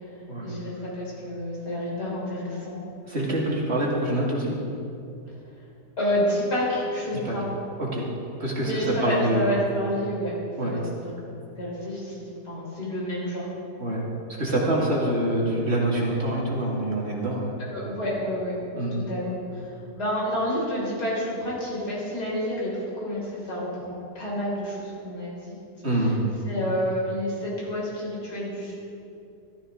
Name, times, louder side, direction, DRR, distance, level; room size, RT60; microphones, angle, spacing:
voice 1, 0.4-2.8 6.0-7.4 8.6-10.4 10.6-11.1 11.6-13.5 17.7-18.5 19.1-25.5 26.5-28.7, equal, 80° left, -6 dB, 4.5 m, -29 dB
voice 2, 3.0-4.6 7.1-7.4 7.8-8.1 8.4-9.5 10.6-10.7 13.8-14.0 14.4-17.5 18.7-18.9 25.8-26.3, right 1 dB, 40° right, -4 dB, 2.3 m, -25 dB
14.0 x 14.0 x 3.7 m, 2.7 s
omnidirectional pair, 1.7 m